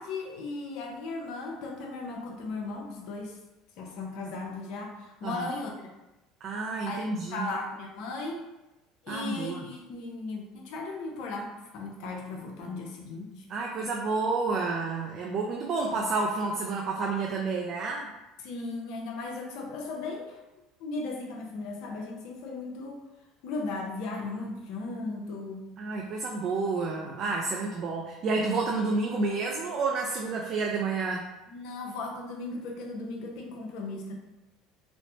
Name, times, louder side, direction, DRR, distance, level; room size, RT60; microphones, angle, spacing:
voice 1, 0.0-3.4 3.8-5.9 6.8-8.4 9.0-13.4 18.4-20.4 20.8-23.0 23.4-25.7 31.5-34.1, left 3 dB, 70° left, 1 dB, 0.6 m, -37 dB
voice 2, 6.4-7.5 9.1-9.7 13.5-18.1 25.8-31.2, right 3 dB, 50° right, -1 dB, 0.4 m, -30 dB
3.1 x 2.0 x 2.8 m, 1.0 s
supercardioid pair, 85°, 0 cm